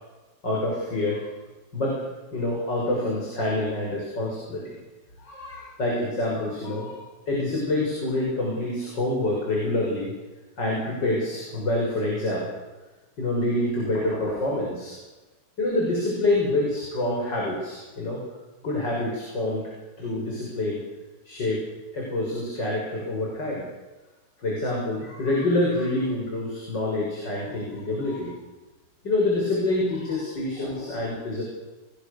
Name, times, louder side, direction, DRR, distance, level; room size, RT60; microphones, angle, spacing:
voice 1, 0.4-1.3 1.7-2.0 2.3-4.6 5.2-10.1 10.6-12.5 13.2-14.9 15.6-18.2 18.6-19.6 20.0-20.8 21.2-21.6 21.9-23.6 24.4-28.3 29.0-31.4, left 2 dB, 80° left, -3 dB, 7.2 m, -26 dB
28.5 x 21.0 x 6.9 m, 1.2 s
omnidirectional pair, 1.9 m